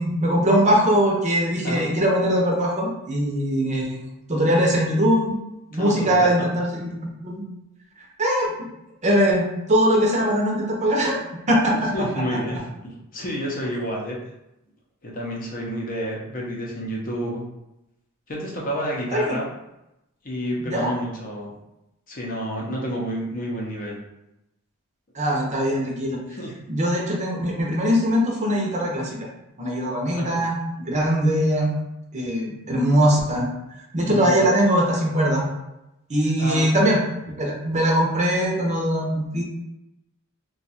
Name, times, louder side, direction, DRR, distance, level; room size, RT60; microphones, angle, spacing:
voice 1, 0.0-5.4 5.7-6.9 7.2-7.4 8.2-8.5 9.0-11.2 11.5-12.1 19.1-19.4 20.7-20.9 25.1-26.2 26.7-29.2 29.6-31.7 32.1-33.5 33.9-35.4 36.1-39.4, equal, 30° right, -2 dB, 0.7 m, -21 dB
voice 2, 5.8-6.5 10.1-10.2 11.9-14.2 15.0-17.4 18.3-19.5 20.2-21.5 22.1-24.0 26.3-26.6 30.1-30.4 30.9-31.1 34.1-34.4 36.4-36.7, equal, 40° left, -3 dB, 0.7 m, -29 dB
2.5 x 2.3 x 4.1 m, 0.89 s
head